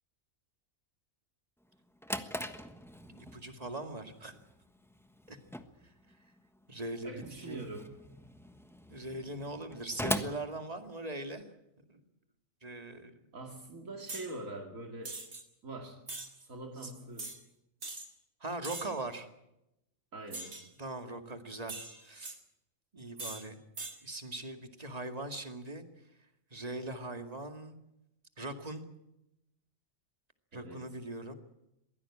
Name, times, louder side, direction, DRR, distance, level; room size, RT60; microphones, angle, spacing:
Drawer open or close, 1.7-11.4, equal, ahead, 1.2 m, -42 dB
voice 1, 3.1-4.3 5.3-5.4 6.7-7.1 7.4-7.7 8.9-11.5 11.9-12.0 12.6-13.1 16.8-16.9 18.4-19.3 20.8-21.7 22.0-22.4 22.9-23.6 24.0-25.8 26.5-27.8 28.4-28.8 30.5-31.3, right 2 dB, 30° right, 6 dB, 2.2 m, -40 dB
voice 2, 7.0-7.9 13.3-15.2 15.6-16.0 16.5-17.4 20.1-20.5 30.5-30.8, right 2 dB, 85° right, 3 dB, 2.9 m, -44 dB
sound 1, 14.1-14.3 15.0-15.4 16.1-16.3 17.2-17.4 17.8-18.1 18.6-19.0 20.3-20.7 21.7-22.4 23.2-23.4 23.8-24.0, right 3 dB, 55° right, 2.7 m, -42 dB
22.5 x 16.0 x 8.7 m, 0.86 s
omnidirectional pair, 1.4 m